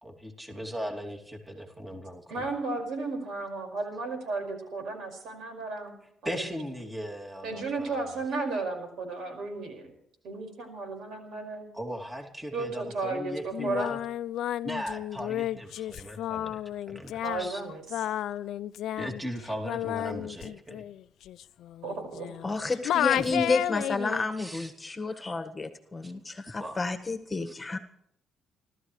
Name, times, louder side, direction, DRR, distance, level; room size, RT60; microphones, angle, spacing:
voice 1, 0.0-2.4 6.2-8.2 11.7-14.0 14.6-16.6 16.9-17.6 19.0-20.8 23.2-23.4 24.4-24.7 25.1-25.2 26.0-26.1 26.6-26.8 27.5-27.6, equal, 10° right, 2 dB, 2.7 m, -38 dB
voice 2, 2.3-6.0 6.2-6.4 7.4-9.9 10.2-11.6 12.5-13.9 17.2-18.0 21.8-22.3, right 3 dB, 75° right, 5 dB, 5.3 m, -34 dB
Singing, 13.5-22.5 22.8-24.3, left 12 dB, 80° left, 0.5 m, -32 dB
voice 3, 22.4-27.8, left 3 dB, 20° left, 7 dB, 1.6 m, -31 dB
29.0 x 13.5 x 3.2 m, 0.73 s
cardioid pair, 100°, 0 cm